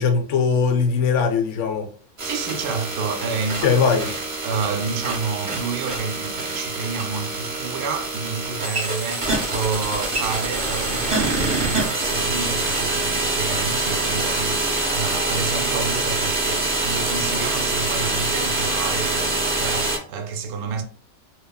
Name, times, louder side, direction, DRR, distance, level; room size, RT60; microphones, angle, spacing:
voice 1, 0.0-1.9 3.6-4.1, left 5 dB, 65° left, 0.9 m, -20 dB
sound 1, 2.2-20.0, right 2 dB, 35° right, 0.6 m, -25 dB
voice 2, 2.2-4.1 4.4-20.8, right 5 dB, 90° right, 1.1 m, -29 dB
2.9 x 2.5 x 2.2 m
omnidirectional pair, 1.5 m